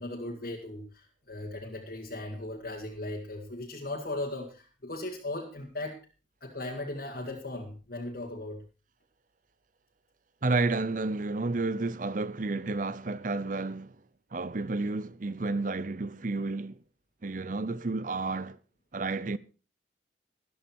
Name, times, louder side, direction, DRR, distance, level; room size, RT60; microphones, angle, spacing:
voice 1, 0.0-6.0 6.4-8.6, left 2 dB, 50° left, 2.2 m, -37 dB
voice 2, 10.4-14.0 14.3-16.8 17.2-18.6 18.9-19.4, right 3 dB, 45° right, 0.7 m, -31 dB
13.0 x 13.0 x 4.5 m
head